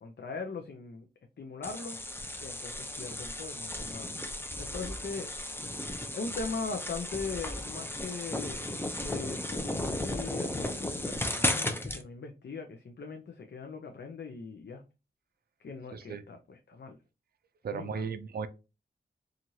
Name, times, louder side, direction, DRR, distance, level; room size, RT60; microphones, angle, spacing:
voice 1, 0.0-1.1 1.4-2.0 2.4-4.1 4.6-5.3 6.1-14.8 15.6-17.0 17.7-18.1, left 4 dB, 60° left, 4 dB, 0.5 m, -40 dB
sound 1, 1.6-12.0, left 1 dB, 10° left, 0.5 m, -35 dB
voice 2, 15.9-16.2 17.6-18.5, right 6 dB, 55° right, 10 dB, 0.4 m, -35 dB
3.0 x 2.4 x 2.7 m, 0.29 s
cardioid pair, 45°, 19 cm